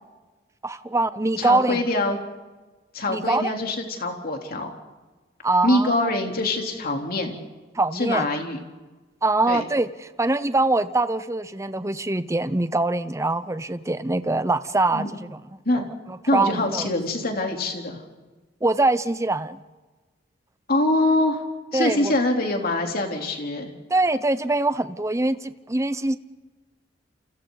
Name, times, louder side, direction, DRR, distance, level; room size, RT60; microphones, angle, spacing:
voice 1, 0.6-2.1 3.1-3.5 5.4-6.1 7.7-8.2 9.2-16.9 18.6-19.6 21.7-22.1 23.9-26.2, right 2 dB, 15° right, 13 dB, 0.8 m, -24 dB
voice 2, 1.4-2.2 2.9-4.7 5.6-7.4 7.9-8.6 9.5-9.6 14.9-15.1 15.6-15.9 16.3-18.0 20.7-21.4 21.7-23.7, left 2 dB, 55° left, 2 dB, 3.5 m, -24 dB
29.5 x 29.0 x 4.0 m, 1.3 s
head